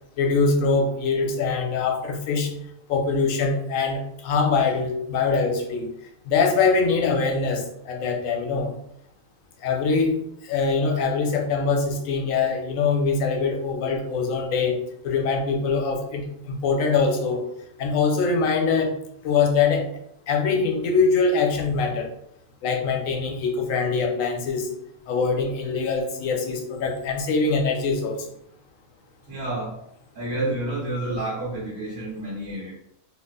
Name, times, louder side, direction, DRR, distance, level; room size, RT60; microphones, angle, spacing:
voice 1, 0.2-2.5 2.9-5.8 6.3-8.7 9.6-10.2 10.5-14.7 15.0-17.4 17.8-18.9 19.2-19.9 20.3-22.1 22.6-24.7 25.1-28.2, left 4 dB, 85° left, 3 dB, 1.1 m, -23 dB
voice 2, 29.3-29.8 30.1-32.7, right 1 dB, 70° right, -8 dB, 1.6 m, -29 dB
3.2 x 2.4 x 3.5 m, 0.74 s
omnidirectional pair, 1.4 m